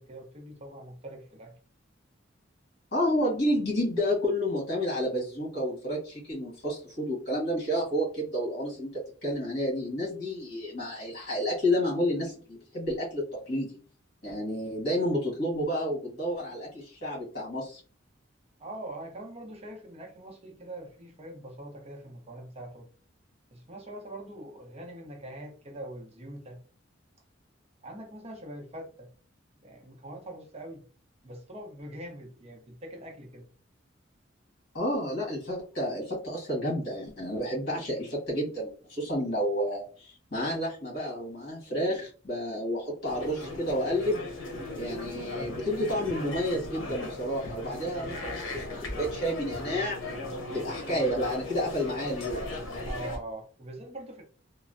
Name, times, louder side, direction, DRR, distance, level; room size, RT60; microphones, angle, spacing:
voice 1, 0.0-1.5 18.6-22.9 23.5-26.6 27.8-29.1 29.6-30.8 31.2-33.5 52.8-54.2, right 1 dB, 35° right, 2 dB, 0.6 m, -43 dB
voice 2, 2.9-13.8 14.2-17.8 34.7-44.2 44.7-50.0 50.5-52.4, equal, 55° left, -3 dB, 1.5 m, -30 dB
sound 1, 43.0-53.2, left 1 dB, 80° left, 0.7 m, -37 dB
3.1 x 2.0 x 2.5 m, 0.40 s
head